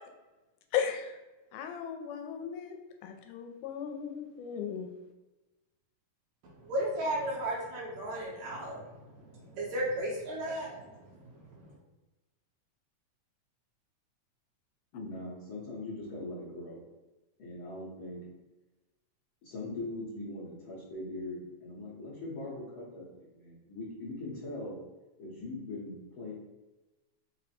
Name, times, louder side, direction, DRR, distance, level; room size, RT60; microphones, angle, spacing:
voice 1, 0.7-1.1 1.5-2.7 3.0-4.9, left 8 dB, 85° left, 5 dB, 2.0 m, -36 dB
voice 2, 6.7-8.8 9.5-10.8, right 1 dB, 75° right, -5 dB, 2.1 m, -33 dB
voice 3, 14.9-16.8 17.4-18.2 19.4-23.0 23.3-24.8 25.2-26.3, left 2 dB, 60° left, -8 dB, 1.4 m, -41 dB
5.0 x 2.1 x 4.2 m, 1.1 s
omnidirectional pair, 3.5 m